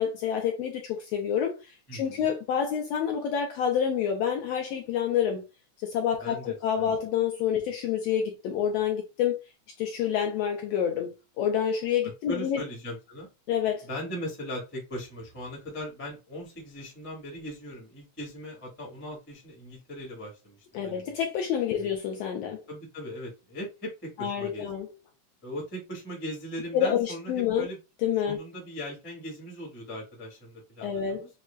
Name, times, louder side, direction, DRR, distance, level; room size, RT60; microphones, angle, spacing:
voice 1, 0.0-1.6 1.9-5.4 5.8-9.4 9.8-12.6 13.5-13.9 20.7-22.6 24.2-24.9 26.7-27.7 28.0-28.4 30.8-31.2, left 8 dB, 80° left, 1.5 m, -28 dB
voice 2, 1.9-2.3 6.2-6.9 12.3-13.3 13.8-20.6 20.8-21.0 21.7-21.9 22.7-24.7 25.4-27.8 28.3-31.3, equal, 15° left, 0.4 m, -39 dB
6.1 x 2.2 x 2.2 m
omnidirectional pair, 3.4 m